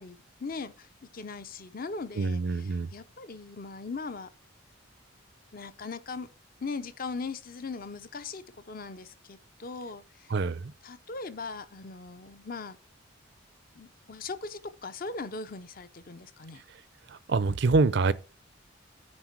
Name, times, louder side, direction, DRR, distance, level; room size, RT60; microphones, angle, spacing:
voice 1, 0.0-4.3 5.5-6.3 6.6-10.3 10.8-12.8 13.7-16.6, left 4 dB, 45° left, 0.7 m, -39 dB
voice 2, 2.2-2.9 10.3-10.6 17.3-18.1, right 3 dB, 60° right, 0.5 m, -25 dB
9.7 x 4.4 x 4.6 m
head